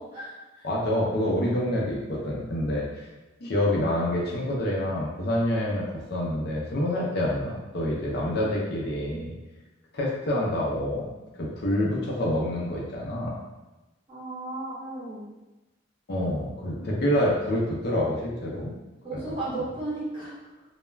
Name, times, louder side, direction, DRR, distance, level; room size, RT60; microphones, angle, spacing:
voice 1, 0.0-0.7 14.1-15.3 19.0-20.4, right 2 dB, 30° right, -9 dB, 0.9 m, -34 dB
voice 2, 0.6-2.9 3.4-9.3 9.9-11.1 11.3-13.4 16.1-18.8 19.1-19.3, left 1 dB, 55° left, -3 dB, 0.5 m, -27 dB
2.3 x 2.1 x 3.1 m, 1.1 s
head